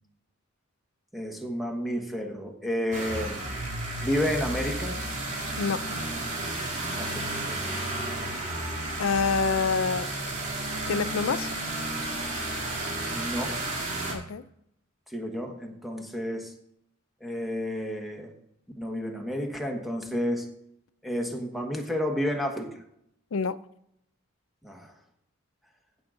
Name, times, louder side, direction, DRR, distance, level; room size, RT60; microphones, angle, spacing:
voice 1, 1.1-3.4 4.0-5.0 7.0-7.7 13.1-13.6 15.1-16.5 17.2-18.3 18.8-20.5 21.0-22.8 24.6-24.9, equal, ahead, 1.3 m, -31 dB
sound 1, 2.9-14.1, right 2 dB, 35° right, 2.4 m, -32 dB
voice 2, 5.6-5.9 9.0-10.1 10.9-11.5 14.1-14.4 23.3-23.6, left 5 dB, 80° left, 0.5 m, -26 dB
16.0 x 6.2 x 3.8 m
head